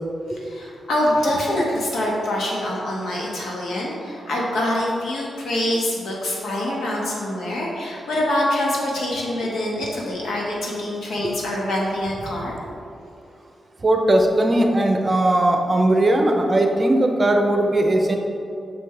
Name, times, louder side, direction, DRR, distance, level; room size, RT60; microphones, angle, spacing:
voice 1, 0.3-12.5, left 1 dB, 90° left, -3 dB, 1.4 m, -25 dB
voice 2, 13.8-18.2, right 1 dB, 30° right, 3 dB, 0.7 m, -18 dB
6.4 x 5.7 x 3.3 m, 2.5 s
cardioid pair, 95°, 0 cm